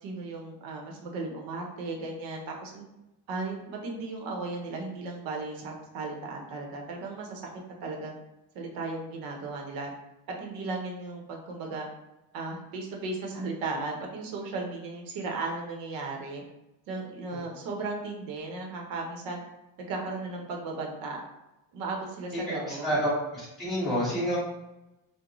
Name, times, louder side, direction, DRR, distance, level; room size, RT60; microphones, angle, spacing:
voice 1, 0.0-2.9 3.3-7.4 7.8-8.1 8.5-9.9 10.4-11.9 12.3-16.4 16.9-19.4 19.8-21.2 21.7-22.9, right 3 dB, 75° right, 0 dB, 0.8 m, -36 dB
voice 2, 22.7-24.4, equal, ahead, -12 dB, 1.4 m, -28 dB
3.8 x 2.1 x 3.0 m, 0.94 s
cardioid pair, 175°, 35 cm